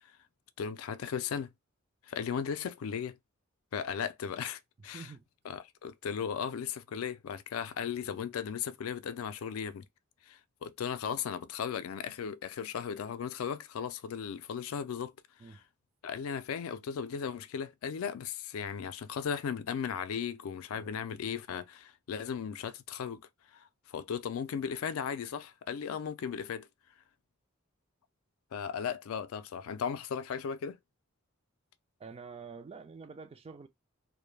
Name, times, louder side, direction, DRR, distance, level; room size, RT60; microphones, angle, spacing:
voice 1, 0.6-1.5 2.1-3.2 3.7-5.1 5.5-9.8 10.3-15.1 16.0-23.2 23.5-26.7 28.5-30.8, left 7 dB, 85° left, 0.3 m, -36 dB
voice 2, 4.8-5.2 15.4-15.6 20.7-20.9 32.0-33.7, right 5 dB, 30° right, 0.3 m, -47 dB
2.2 x 2.1 x 3.1 m
head